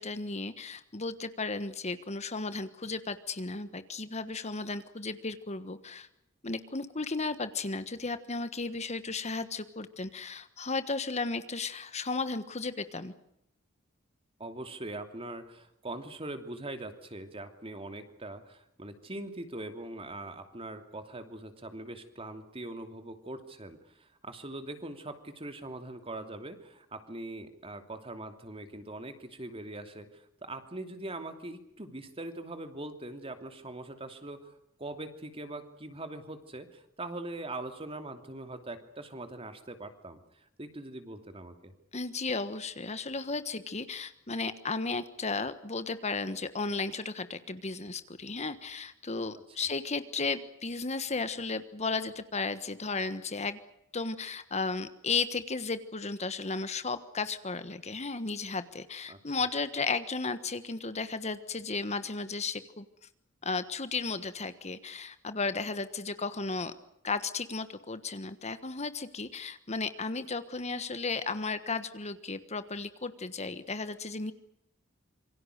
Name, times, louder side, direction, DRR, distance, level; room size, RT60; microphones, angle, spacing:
voice 1, 0.0-6.1 6.4-13.1 41.9-53.6 53.9-62.8 63.4-66.7 67.0-74.3, left 4 dB, 35° left, 12 dB, 1.3 m, -34 dB
voice 2, 14.4-41.7 59.1-59.2, right 2 dB, 30° right, 8 dB, 2.9 m, -42 dB
27.0 x 24.0 x 6.6 m, 0.79 s
head